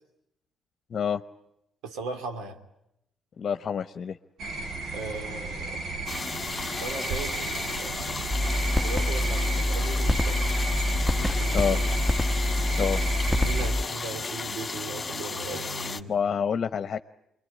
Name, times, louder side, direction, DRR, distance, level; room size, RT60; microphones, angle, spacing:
voice 1, 0.9-1.2 3.4-4.2 11.5-11.8 12.8-13.0 16.1-17.0, left 7 dB, 50° left, 10 dB, 0.9 m, -27 dB
voice 2, 1.8-2.6 4.9-5.8 6.8-8.1 8.8-10.4 11.1-11.9 13.4-16.2, right 3 dB, 90° right, 8 dB, 2.9 m, -38 dB
sound 1, 4.4-13.7, right 3 dB, 65° right, 3.1 m, -34 dB
sound 2, 6.1-16.0, left 4 dB, 30° left, 1.7 m, -34 dB
sound 3, 8.3-13.9, left 1 dB, 5° left, 1.3 m, -26 dB
26.0 x 22.5 x 9.8 m, 0.83 s
cardioid pair, 90°, 0 cm